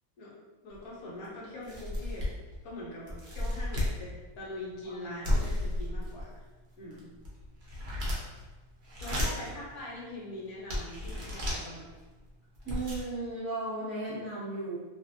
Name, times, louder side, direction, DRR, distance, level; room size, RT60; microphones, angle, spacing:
voice 1, 0.6-2.3 2.6-6.4 6.8-7.1 9.0-11.9, left 1 dB, 90° left, -5 dB, 1.3 m, -42 dB
sound 1, 0.7-0.8 1.2-1.3 1.6-2.5 3.1-4.0 5.2-6.3 6.9-8.4 8.8-9.5 10.1-10.2 10.7-11.6 12.3-12.4 12.6-13.0, left 1 dB, 45° right, 0.7 m, -32 dB
voice 2, 12.6-14.8, right 2 dB, 20° right, -12 dB, 1.0 m, -35 dB
2.9 x 2.6 x 2.5 m, 1.2 s
omnidirectional pair, 1.5 m